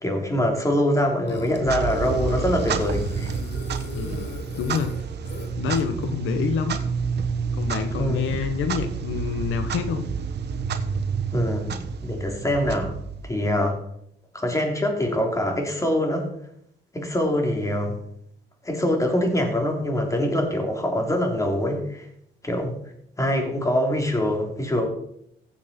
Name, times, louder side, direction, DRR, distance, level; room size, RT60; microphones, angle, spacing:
voice 1, 0.0-3.3 5.9-6.0 8.0-8.3 11.3-12.9 13.2-13.8 14.3-16.3 16.9-18.0 18.6-22.1 22.4-22.7 23.2-24.9, left 1 dB, 15° left, 2 dB, 3.2 m, -24 dB
Burping eructation, 1.3-6.0, left 4 dB, 60° left, 2.2 m, -37 dB
Clock, 1.5-13.5, right 6 dB, 55° right, 1.2 m, -29 dB
voice 2, 3.9-4.9 5.6-6.8 7.5-10.0, left 7 dB, 80° left, 8 dB, 1.2 m, -27 dB
15.5 x 7.4 x 4.4 m, 0.72 s
cardioid pair, 90°, 20 cm